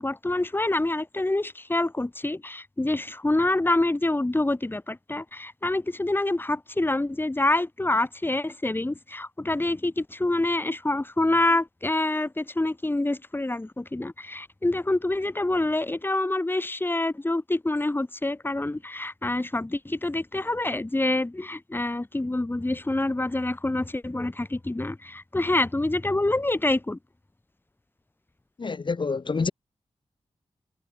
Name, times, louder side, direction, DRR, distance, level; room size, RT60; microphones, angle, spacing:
voice 1, 0.0-27.0, left 2 dB, 20° left, 2.2 m, -26 dB
voice 2, 28.6-29.5, left 4 dB, 50° left, 1.8 m, -27 dB
cardioid pair, 65°, 11 cm